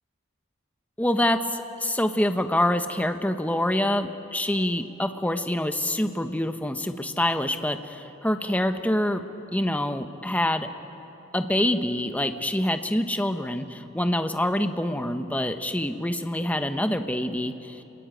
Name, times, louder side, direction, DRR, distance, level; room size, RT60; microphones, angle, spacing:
voice 1, 1.0-9.2 9.5-10.7 11.3-17.8, left 1 dB, 10° left, 7 dB, 1.1 m, -26 dB
29.0 x 21.5 x 9.1 m, 3.0 s
head